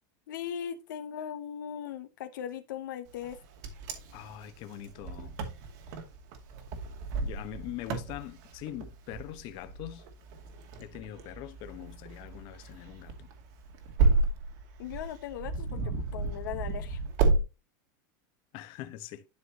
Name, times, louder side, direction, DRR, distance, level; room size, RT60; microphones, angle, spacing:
voice 1, 0.3-3.4 14.8-17.0, left 9 dB, 80° left, 1.0 m, -39 dB
Wind, 3.2-17.4, right 3 dB, 65° right, 2.4 m, -32 dB
voice 2, 4.1-5.4 7.2-10.1 10.8-13.3 18.5-19.2, left 13 dB, 55° left, 1.2 m, -43 dB
12.0 x 4.6 x 3.1 m
supercardioid pair, 120°, 10 cm